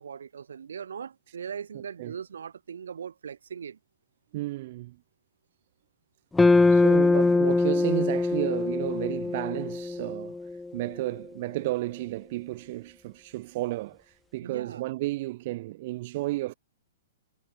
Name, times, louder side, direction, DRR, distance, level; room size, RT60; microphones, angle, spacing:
voice 1, 0.0-3.8 14.4-14.8, right 7 dB, 80° right, 1.6 m, -39 dB
voice 2, 4.3-5.0 6.7-10.4 10.7-16.5, right 18 dB, 50° right, 0.8 m, -32 dB
sound 1, 6.4-10.7, left 3 dB, 5° left, 0.3 m, -23 dB
hypercardioid pair, 130°, 0 cm